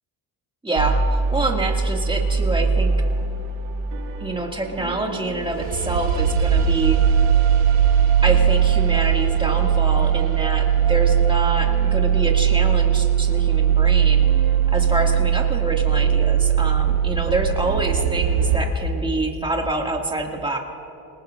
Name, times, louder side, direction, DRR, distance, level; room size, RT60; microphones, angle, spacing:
voice 1, 0.6-2.9 4.2-7.0 8.2-20.6, right 2 dB, 10° right, 1 dB, 2.2 m, -26 dB
sound 1, 0.8-18.6, right 8 dB, 85° right, 1.5 m, -20 dB
27.5 x 19.5 x 2.6 m, 2.9 s
cardioid pair, 80°, 47 cm